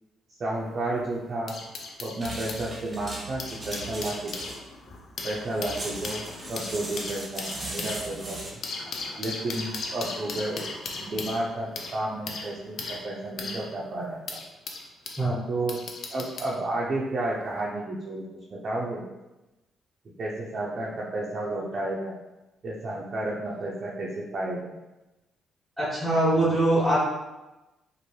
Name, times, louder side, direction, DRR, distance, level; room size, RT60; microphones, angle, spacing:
voice 1, 0.4-1.6 2.0-4.5 5.2-6.2 6.5-8.6 9.2-14.4 15.5-15.8 16.1-19.0 20.2-22.2 22.6-24.7, right 2 dB, 45° right, -4 dB, 0.5 m, -32 dB
sound 1, 0.5-2.6 3.2-15.2 15.7-16.6 17.4-17.6, left 3 dB, 60° left, 0.4 m, -38 dB
sound 2, 2.2-8.5, right 2 dB, 25° right, 0.9 m, -38 dB
voice 2, 25.8-27.0, right 1 dB, 5° right, -11 dB, 1.2 m, -22 dB
2.7 x 2.5 x 3.1 m, 1.0 s
cardioid pair, 90°, 0 cm